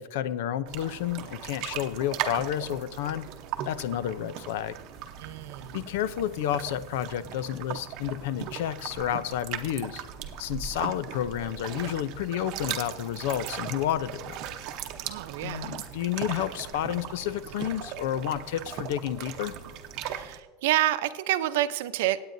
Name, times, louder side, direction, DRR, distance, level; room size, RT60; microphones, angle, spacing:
voice 1, 0.0-3.3 3.6-4.8 5.7-10.0 10.4-14.4 15.4-19.6, left 11 dB, 75° left, 16 dB, 0.5 m, -30 dB
sound 1, 0.7-20.4, right 10 dB, 50° right, 0.8 m, -38 dB
sound 2, 4.8-20.2, equal, 30° left, 3.2 m, -53 dB
voice 2, 5.2-5.8 15.0-15.8 20.1-22.2, right 14 dB, 75° right, 12 dB, 0.6 m, -28 dB
25.5 x 8.8 x 2.7 m, 1.4 s
supercardioid pair, 155°, 0 cm